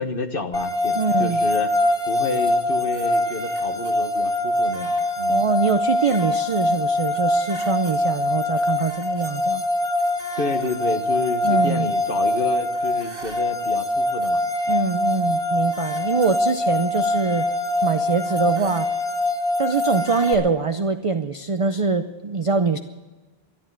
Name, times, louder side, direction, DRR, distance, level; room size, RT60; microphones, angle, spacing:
voice 1, 0.0-1.8 2.1-5.4 10.4-14.4, left 3 dB, 60° left, 6 dB, 1.3 m, -29 dB
sound 1, 0.5-20.3, left 1 dB, 60° right, 2.5 m, -23 dB
voice 2, 0.9-1.4 5.3-9.6 11.4-11.9 14.7-17.5 17.8-18.9 19.6-22.8, right 4 dB, 40° right, 8 dB, 0.6 m, -23 dB
13.0 x 11.5 x 7.4 m, 1.2 s
omnidirectional pair, 1.0 m